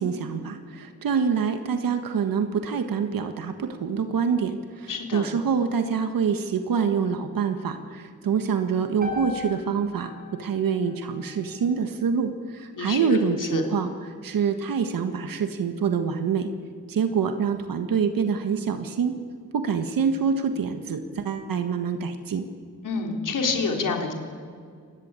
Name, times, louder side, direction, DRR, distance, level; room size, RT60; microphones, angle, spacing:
voice 1, 0.0-16.5 16.9-19.1 19.5-22.4, right 6 dB, 75° right, 7 dB, 1.6 m, -26 dB
voice 2, 4.9-5.3 12.8-13.6 22.8-24.1, left 4 dB, 65° left, 2 dB, 3.9 m, -28 dB
sound 1, 9.0-13.2, left 3 dB, 25° right, 7.7 m, -40 dB
23.5 x 20.0 x 9.0 m, 2.2 s
cardioid pair, 105°, 34 cm